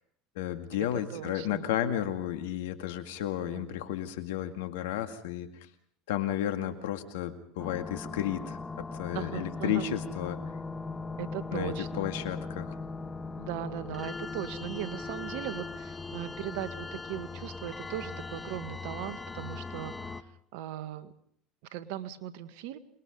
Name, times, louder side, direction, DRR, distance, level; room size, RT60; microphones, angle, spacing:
voice 1, 0.4-5.5 6.1-10.4 11.5-12.8, left 11 dB, 80° left, 8 dB, 2.2 m, -33 dB
voice 2, 0.9-1.7 3.5-3.8 9.1-9.9 11.2-12.1 13.4-21.1 21.7-22.8, right 12 dB, 75° right, 11 dB, 1.7 m, -38 dB
sound 1, 7.6-20.2, left 3 dB, 20° left, 1.3 m, -39 dB
27.5 x 21.0 x 5.4 m, 0.63 s
hypercardioid pair, 85°, 0 cm